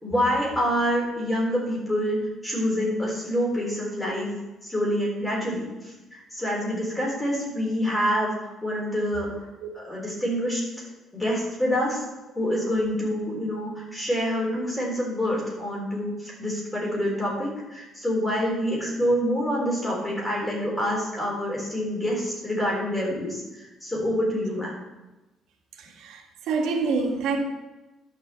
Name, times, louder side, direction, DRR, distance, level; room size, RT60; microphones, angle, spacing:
voice 1, 0.0-2.2 2.4-4.3 4.6-5.7 6.3-8.3 8.6-9.3 9.7-10.6 11.1-12.0 12.4-23.4 23.8-24.7, equal, 10° left, -4 dB, 4.0 m, -26 dB
voice 2, 26.0-27.4, right 4 dB, 90° right, 1 dB, 1.9 m, -26 dB
11.0 x 5.9 x 7.6 m, 1.0 s
cardioid pair, 165°, 0 cm